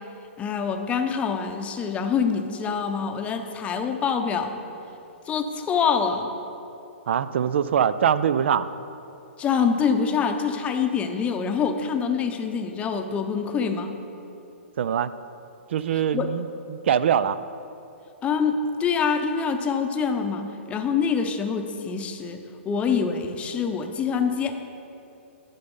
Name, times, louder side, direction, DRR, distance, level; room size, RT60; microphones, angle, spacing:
voice 1, 0.4-4.5 5.3-6.3 9.4-13.9 16.1-16.3 18.2-24.5, left 6 dB, 20° left, 5 dB, 0.7 m, -25 dB
voice 2, 7.1-8.7 14.8-15.1 15.7-16.4 16.7-17.4, right 8 dB, 65° right, 15 dB, 0.4 m, -23 dB
10.5 x 5.3 x 5.4 m, 2.7 s
hypercardioid pair, 130°, 7 cm